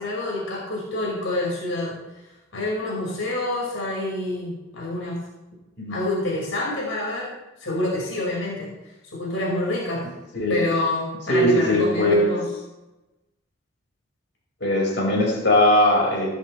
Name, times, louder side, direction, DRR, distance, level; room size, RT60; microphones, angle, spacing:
voice 1, 0.0-2.0 2.5-5.2 5.9-7.3 7.6-8.7 9.1-10.1 10.5-12.5, left 2 dB, 85° left, -4 dB, 5.3 m, -27 dB
voice 2, 11.3-12.3 14.6-16.3, left 1 dB, 60° left, -2 dB, 5.4 m, -19 dB
17.5 x 13.0 x 3.3 m, 1.0 s
head